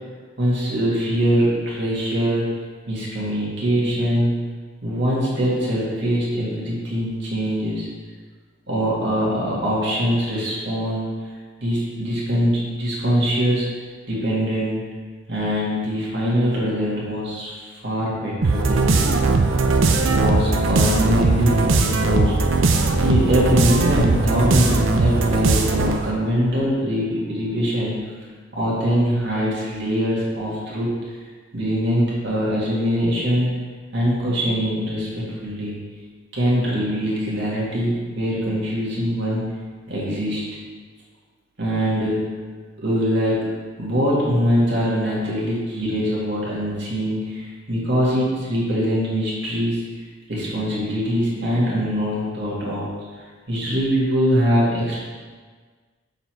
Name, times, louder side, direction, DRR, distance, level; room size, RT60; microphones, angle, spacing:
voice 1, 0.4-2.5 2.9-4.3 4.8-7.9 8.7-11.1 11.6-13.7 14.1-14.8 15.3-22.3 22.9-28.0 28.5-30.9 31.5-33.5 33.9-35.8 36.3-39.4 39.9-40.4 41.6-42.2 42.8-43.4 43.8-49.8 50.3-52.9 53.5-55.1, equal, 60° right, -6 dB, 2.1 m, -23 dB
sound 1, 18.4-26.1, right 3 dB, 90° right, 0.6 m, -19 dB
6.9 x 4.0 x 4.5 m, 1.5 s
head